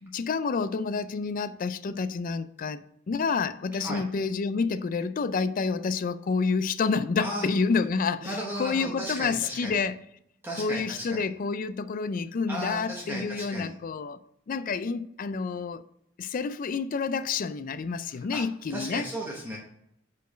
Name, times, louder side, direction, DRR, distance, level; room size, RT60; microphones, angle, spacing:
voice 1, 0.0-10.0 10.6-14.2 14.5-15.8 16.2-19.1, left 5 dB, 40° left, 0.3 m, -29 dB
voice 2, 8.2-9.8 10.4-11.3 12.5-13.8 18.1-18.4 18.7-19.6, equal, 10° right, 0.9 m, -35 dB
5.2 x 4.5 x 5.0 m
head